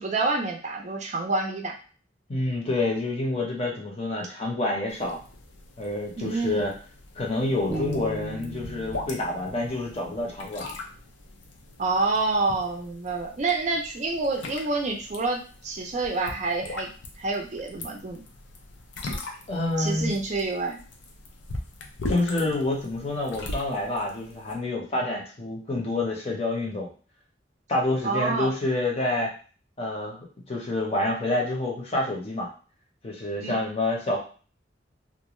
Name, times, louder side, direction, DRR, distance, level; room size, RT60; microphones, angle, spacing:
voice 1, 0.0-1.7 6.2-6.6 11.8-16.9 17.2-18.2 19.8-20.8 28.0-28.5 33.4-33.6, right 3 dB, 40° right, 1 dB, 0.4 m, -28 dB
voice 2, 2.3-5.2 5.8-6.7 7.2-10.7 19.5-20.1 22.1-26.9 27.7-29.3 29.8-32.5 33.0-34.2, left 2 dB, 35° left, -1 dB, 0.8 m, -28 dB
sound 1, 4.9-24.6, left 2 dB, 85° left, 0.5 m, -40 dB
sound 2, 7.7-10.7, right 2 dB, 5° right, 0.7 m, -37 dB
2.5 x 2.2 x 3.0 m, 0.38 s
head